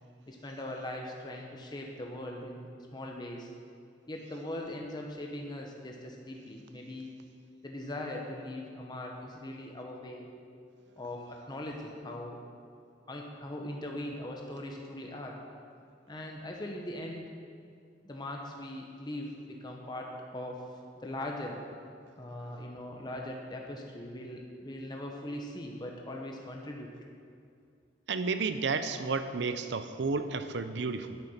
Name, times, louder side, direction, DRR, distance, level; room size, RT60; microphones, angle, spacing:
voice 1, 0.3-3.5 4.1-7.1 7.6-10.3 11.0-12.4 13.1-15.4 16.1-17.3 18.0-21.6 22.2-26.9, left 1 dB, 25° left, 0 dB, 1.0 m, -40 dB
voice 2, 28.1-31.2, right 4 dB, 70° right, 10 dB, 0.6 m, -32 dB
9.7 x 9.1 x 5.8 m, 2.3 s
head